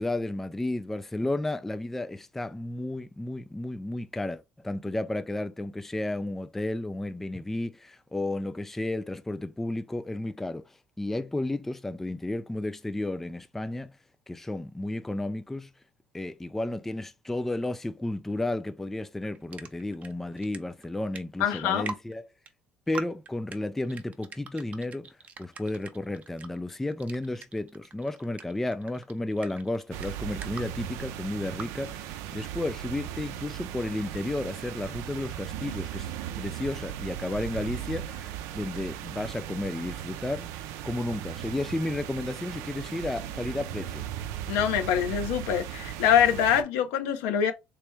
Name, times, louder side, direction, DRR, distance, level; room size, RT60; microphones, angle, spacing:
voice 1, 0.0-14.0 14.3-15.7 16.1-22.3 22.9-36.1 36.4-44.1, left 2 dB, 5° left, 0.3 m, -33 dB
sound 1, 19.2-20.6 20.8-22.1 22.5-22.6 22.9-23.6 23.8-30.6 31.3-31.7, right 5 dB, 30° right, 0.6 m, -41 dB
voice 2, 21.4-21.9 44.5-47.5, left 9 dB, 85° left, 0.8 m, -24 dB
sound 2, 29.9-46.6, right 11 dB, 80° right, 0.5 m, -37 dB
3.4 x 3.0 x 3.1 m
cardioid pair, 125°, 5 cm